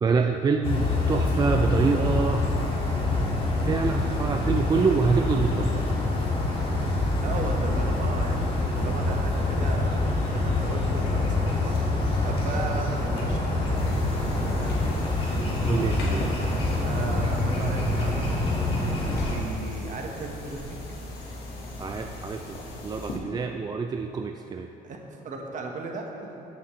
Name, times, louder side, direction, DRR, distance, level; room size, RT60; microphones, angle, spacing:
voice 1, 0.0-2.5 3.7-5.9 15.6-16.4 21.8-24.7, right 5 dB, 25° right, 4 dB, 0.4 m, -26 dB
sound 1, 0.6-19.4, left 2 dB, 35° left, 2.0 m, -26 dB
voice 2, 7.2-11.8 12.2-14.8 16.8-18.6 19.1-20.8 24.8-26.4, right 3 dB, 50° right, 1 dB, 1.3 m, -36 dB
sound 2, 13.7-23.2, left 1 dB, 70° left, 1.8 m, -39 dB
14.0 x 6.9 x 3.2 m, 2.9 s
cardioid pair, 110°, 17 cm